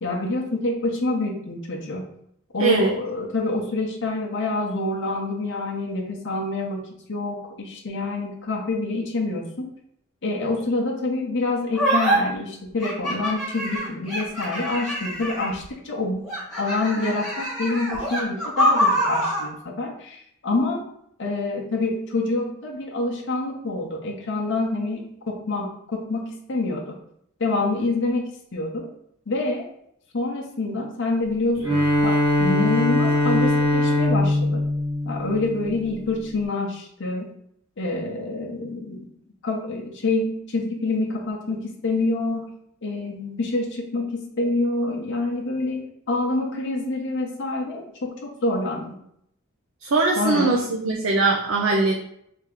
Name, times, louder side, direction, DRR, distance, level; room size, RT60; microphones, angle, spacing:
voice 1, 0.0-2.1 2.5-9.6 10.2-16.3 16.6-20.9 21.2-27.0 27.4-28.9 29.3-29.7 30.1-34.6 35.1-37.3 37.8-39.1 39.4-48.9 50.2-50.7, left 2 dB, 60° left, -1 dB, 0.7 m, -27 dB
voice 2, 2.6-2.9 49.8-52.1, right 3 dB, 65° right, -1 dB, 0.5 m, -21 dB
sound 1, 11.7-12.2 12.8-15.6 16.2-19.5, equal, ahead, 1.5 m, -25 dB
Bowed string instrument, 31.6-35.9, left 1 dB, 80° right, 1.4 m, -21 dB
3.4 x 2.8 x 3.6 m, 0.73 s
head